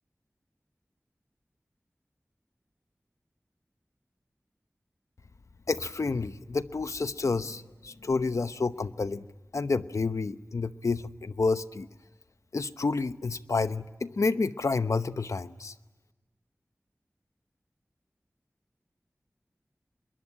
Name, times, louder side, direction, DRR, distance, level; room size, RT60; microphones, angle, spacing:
voice 1, 5.7-9.3 9.5-11.9 12.5-15.7, left 4 dB, 85° left, 12 dB, 0.9 m, -29 dB
25.0 x 22.5 x 9.9 m, 1.1 s
wide cardioid pair, 60°, 5 cm